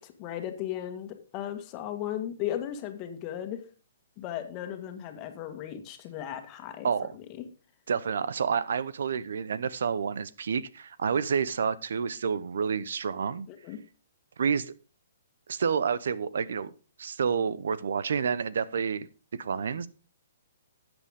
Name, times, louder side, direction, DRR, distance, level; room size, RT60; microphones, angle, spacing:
voice 1, 0.0-3.7 4.2-6.9 7.1-7.5 13.5-13.8, left 11 dB, 30° left, 1.7 m, -36 dB
voice 2, 7.9-13.5 14.4-14.7 15.5-16.7 17.0-19.1 19.4-19.9, right 6 dB, 70° right, 0.8 m, -29 dB
12.5 x 8.0 x 3.7 m
hypercardioid pair, 130°, 0 cm